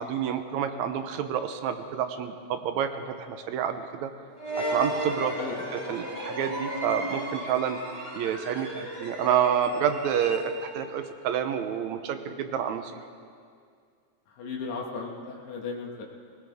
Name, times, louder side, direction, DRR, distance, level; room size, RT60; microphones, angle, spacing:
voice 1, 0.0-4.1 4.6-5.3 5.7-7.8 8.2-13.0, right 8 dB, 75° right, 8 dB, 2.0 m, -29 dB
sound 1, 4.4-10.8, right 1 dB, 20° right, 3.2 m, -34 dB
voice 2, 5.4-6.0 14.4-16.0, left 4 dB, 70° left, -2 dB, 3.0 m, -36 dB
20.5 x 19.0 x 3.5 m, 2.2 s
omnidirectional pair, 3.5 m